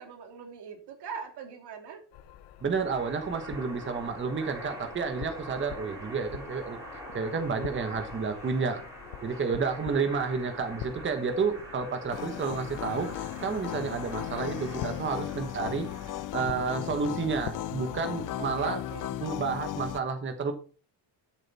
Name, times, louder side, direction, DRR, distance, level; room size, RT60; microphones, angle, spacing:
voice 1, 0.0-2.0 18.4-19.2, right 6 dB, 70° right, 5 dB, 2.9 m, -41 dB
sound 1, 2.1-19.0, left 11 dB, 90° left, 1.1 m, -47 dB
sound 2, 2.6-16.2, right 1 dB, 5° right, 7.1 m, -45 dB
voice 2, 2.6-6.8 7.1-8.8 9.2-15.9 16.3-18.8 19.2-20.5, right 5 dB, 30° right, 7 dB, 1.3 m, -30 dB
sound 3, 12.1-20.0, left 12 dB, 50° left, 0.6 m, -36 dB
13.0 x 7.1 x 4.2 m, 0.37 s
cardioid pair, 140°, 40 cm